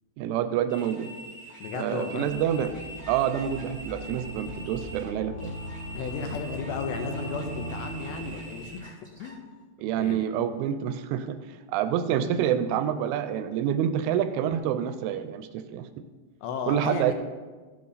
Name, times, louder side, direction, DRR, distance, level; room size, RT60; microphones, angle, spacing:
voice 1, 0.2-1.1 1.7-2.8 3.1-5.5 9.8-15.9 16.7-17.1, right 9 dB, 85° right, 10 dB, 2.8 m, -27 dB
sound 1, 0.7-9.4, right 1 dB, 15° right, 0.3 m, -45 dB
voice 2, 1.6-2.3 5.9-9.4 10.0-10.3 16.4-17.1, left 6 dB, 80° left, 5 dB, 2.5 m, -34 dB
sound 2, 2.3-8.6, right 1 dB, 60° left, 2.5 m, -39 dB
15.0 x 7.6 x 4.0 m, 1.4 s
omnidirectional pair, 5.8 m